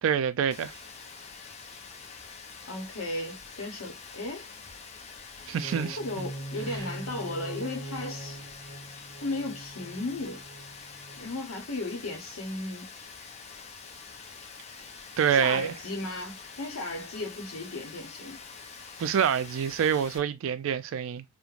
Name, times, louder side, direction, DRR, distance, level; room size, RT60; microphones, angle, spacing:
voice 1, 0.0-0.7 5.5-6.0 15.2-15.7 19.0-21.2, right 8 dB, 65° right, 0.3 m, -26 dB
Rain, 0.5-20.2, left 5 dB, 30° left, 0.4 m, -46 dB
voice 2, 2.6-4.5 6.0-8.4 9.2-10.4 11.2-12.9 15.3-18.4, left 2 dB, 85° left, 0.8 m, -35 dB
sound 1, 5.4-11.4, right 1 dB, 15° right, 0.9 m, -41 dB
3.1 x 2.1 x 2.4 m
head